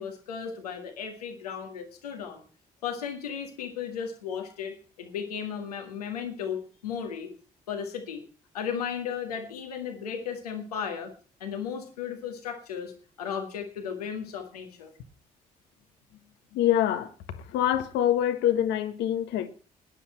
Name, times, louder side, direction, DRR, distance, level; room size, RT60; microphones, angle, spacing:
voice 1, 0.0-2.4 2.8-7.3 7.7-8.2 8.5-11.1 11.4-12.9 13.2-14.9, left 7 dB, 85° left, 1.9 m, -35 dB
voice 2, 16.5-17.1 17.5-19.5, left 11 dB, 70° left, 1.4 m, -25 dB
17.5 x 10.5 x 4.3 m
figure-of-eight pair, 40°, 19 cm